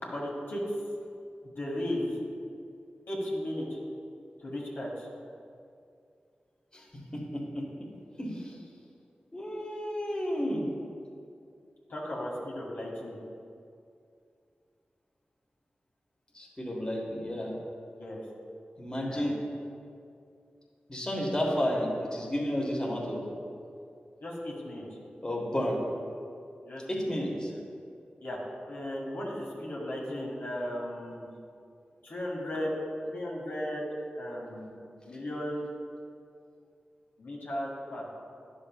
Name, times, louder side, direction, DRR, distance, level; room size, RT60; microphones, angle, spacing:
voice 1, 0.0-0.6 1.6-2.1 3.1-3.7 4.4-5.1 11.9-13.2 18.0-18.2 19.1-19.2 24.2-24.8 26.6-27.3 28.2-28.4 28.6-31.3 32.0-32.7 33.1-33.8 34.2-34.8 35.0-35.7 37.2-38.1, left 1 dB, 75° left, -5 dB, 1.7 m, -35 dB
voice 2, 7.1-7.9 8.2-8.6 9.3-10.6 16.3-17.6 18.8-19.4 20.9-23.2 25.2-25.8 26.9-27.5, equal, 25° left, -3 dB, 1.5 m, -31 dB
10.5 x 6.4 x 2.4 m, 2.4 s
cardioid pair, 45°, 4 cm